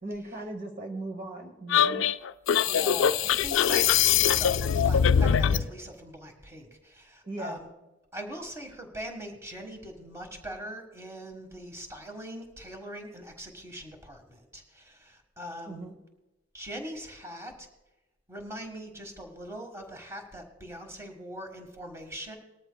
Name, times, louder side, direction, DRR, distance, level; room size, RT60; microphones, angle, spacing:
voice 1, 0.0-2.0 7.2-7.6 15.7-15.9, right 2 dB, 45° right, 3 dB, 1.1 m, -38 dB
sound 1, 1.7-5.7, left 8 dB, 75° left, 0.4 m, -22 dB
voice 2, 2.6-7.7 8.1-15.9 16.5-17.7 18.3-22.4, equal, 15° right, 4 dB, 1.6 m, -42 dB
19.5 x 13.5 x 2.3 m, 1.0 s
head